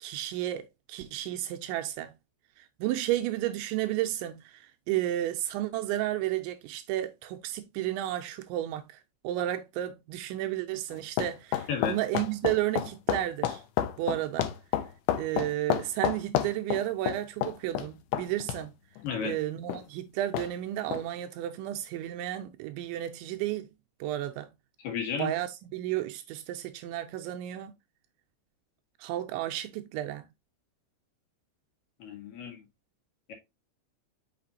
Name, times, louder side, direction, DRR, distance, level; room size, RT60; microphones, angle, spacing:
voice 1, 0.0-2.1 2.6-8.9 9.2-13.6 14.0-14.5 15.2-18.7 19.2-23.7 24.0-24.5 25.2-27.7 29.0-30.2, right 13 dB, 85° right, 2.8 m, -32 dB
sound 1, 10.9-18.6 19.0-19.1 19.7-19.8 20.3-20.5 20.9-21.0, left 11 dB, 80° left, 2.4 m, -30 dB
voice 2, 19.0-19.3 24.8-25.3 32.0-32.6 33.3-33.4, left 6 dB, 60° left, 2.6 m, -33 dB
6.7 x 5.7 x 2.6 m
omnidirectional pair, 5.5 m